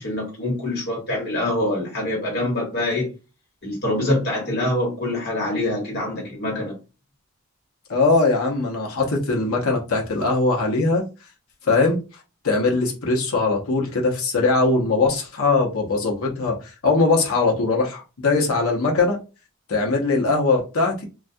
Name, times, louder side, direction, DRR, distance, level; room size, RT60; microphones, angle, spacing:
voice 1, 0.0-3.1 3.6-6.8, left 1 dB, 50° left, 1.4 m, -25 dB
voice 2, 7.9-11.0 11.7-12.0 12.4-16.6 16.8-19.2 19.7-21.0, left 3 dB, 70° left, 0.8 m, -20 dB
2.3 x 2.2 x 2.6 m
head